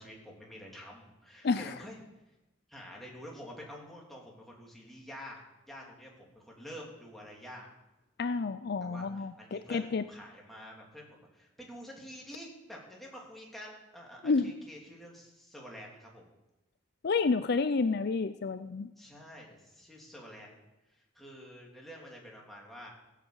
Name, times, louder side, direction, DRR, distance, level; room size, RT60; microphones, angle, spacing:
voice 1, 0.0-2.0 2.7-5.4 5.7-7.7 8.8-16.3 19.0-20.6 21.1-22.9, equal, ahead, -3 dB, 3.3 m, -48 dB
voice 2, 8.2-10.0 14.2-14.5 17.0-18.9, left 4 dB, 55° left, 12 dB, 0.5 m, -30 dB
17.0 x 7.3 x 8.1 m, 0.98 s
head